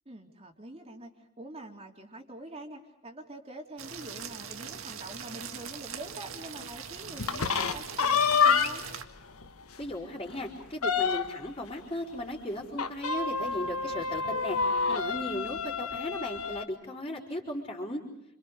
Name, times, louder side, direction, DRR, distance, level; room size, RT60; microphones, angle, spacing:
voice 1, 0.1-8.9, right 1 dB, 30° right, 2 dB, 3.6 m, -45 dB
sound 1, 3.8-9.0, right 7 dB, 70° right, 2.0 m, -41 dB
sound 2, 7.2-9.0 9.4-9.5 9.8-9.9 10.3-11.5 12.8-16.7, left 5 dB, 90° left, 1.5 m, -28 dB
voice 2, 9.8-14.6 14.9-18.0, left 1 dB, 25° left, -8 dB, 4.7 m, -36 dB
30.0 x 27.5 x 5.1 m, 0.82 s
head